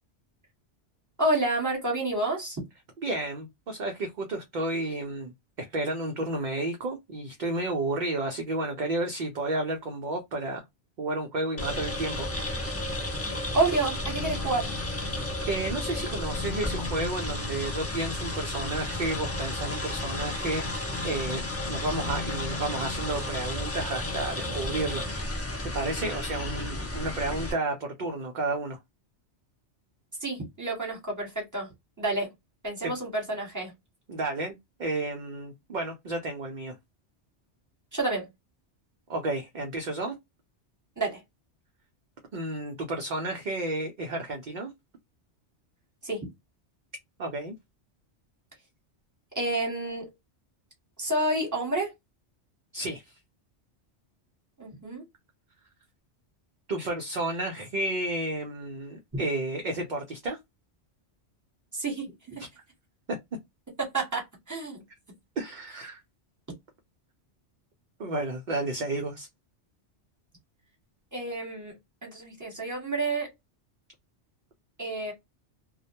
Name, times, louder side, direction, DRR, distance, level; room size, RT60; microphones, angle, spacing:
voice 1, 1.2-2.6 13.5-14.7 30.2-31.7 32.0-32.3 32.6-33.7 37.9-38.3 41.0-41.2 46.0-46.3 49.3-50.1 51.0-51.9 54.6-55.0 61.7-62.4 63.8-64.8 71.1-71.7 72.0-73.3 74.8-75.1, right 2 dB, 15° right, 1.1 m, -29 dB
voice 2, 3.0-5.3 5.6-10.6 11.0-12.3 12.7-13.0 15.5-25.1 25.6-28.8 32.8-32.9 34.1-36.8 39.1-40.1 42.3-44.7 47.2-47.5 52.7-53.2 56.7-60.4 62.4-62.5 65.4-66.0 68.0-69.3, right 2 dB, 55° right, 0.6 m, -32 dB
sound 1, 11.6-27.5, left 2 dB, 25° left, 0.3 m, -32 dB
2.2 x 2.1 x 2.8 m
omnidirectional pair, 1.2 m